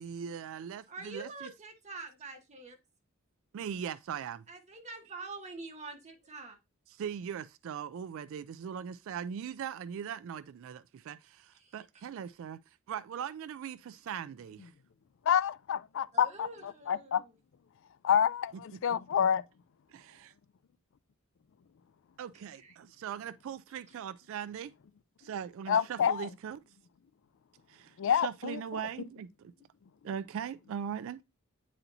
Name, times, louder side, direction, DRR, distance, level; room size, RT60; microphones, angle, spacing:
voice 1, 0.0-1.5 3.5-4.4 6.9-12.6 12.9-14.6 18.7-18.8 19.9-20.3 22.2-24.7 25.2-26.6 27.7-29.5 30.0-31.2, right 8 dB, 65° right, 0.3 m, -40 dB
voice 2, 0.9-2.8 4.5-6.6 11.5-11.7 16.1-17.4 22.5-22.8 23.9-24.0, right 3 dB, 35° right, 1.3 m, -46 dB
voice 3, 15.3-17.2 18.0-19.4 25.7-26.3 28.0-28.6, left 8 dB, 60° left, 0.4 m, -28 dB
8.9 x 4.2 x 2.7 m
head